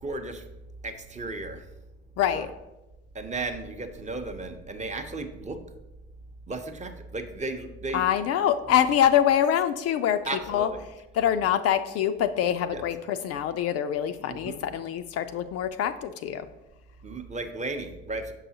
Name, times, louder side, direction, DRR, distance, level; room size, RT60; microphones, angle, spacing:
voice 1, 0.0-0.4 0.8-1.6 2.3-2.5 3.1-5.6 6.5-8.0 10.3-10.8 12.7-12.8 14.3-14.7 17.0-18.3, right 2 dB, 20° right, 5 dB, 0.7 m, -34 dB
voice 2, 2.2-2.5 7.9-10.2 10.5-10.7 11.1-16.5, left 10 dB, 50° left, 9 dB, 0.4 m, -25 dB
6.8 x 5.5 x 2.8 m, 1.0 s
hypercardioid pair, 65°, 32 cm